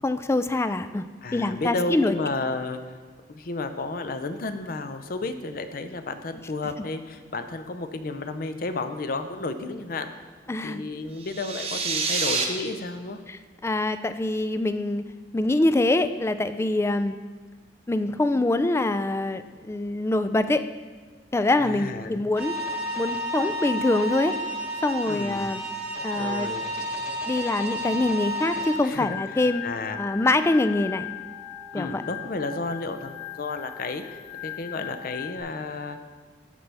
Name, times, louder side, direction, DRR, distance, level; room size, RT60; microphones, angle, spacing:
voice 1, 0.0-1.0 1.3-2.1 10.5-10.8 13.3-15.0 15.3-17.2 17.9-20.6 21.3-22.5 23.0-24.3 24.8-25.6 26.0-26.5 27.3-29.6 30.0-31.1 31.7-32.0, left 2 dB, 15° left, 11 dB, 0.3 m, -24 dB
voice 2, 1.2-2.8 3.3-10.1 10.6-13.2 21.6-22.1 25.1-25.5 26.2-26.7 28.8-29.2 29.6-30.0 31.7-34.0 34.4-36.1, left 3 dB, 55° left, 9 dB, 0.6 m, -32 dB
sound 1, 11.2-12.4, right 4 dB, 35° right, 0.8 m, -27 dB
sound 2, 22.4-28.8, equal, 5° right, 1.0 m, -31 dB
Organ, 29.0-35.4, left 12 dB, 80° left, 1.8 m, -38 dB
13.5 x 5.4 x 3.4 m, 1.5 s
head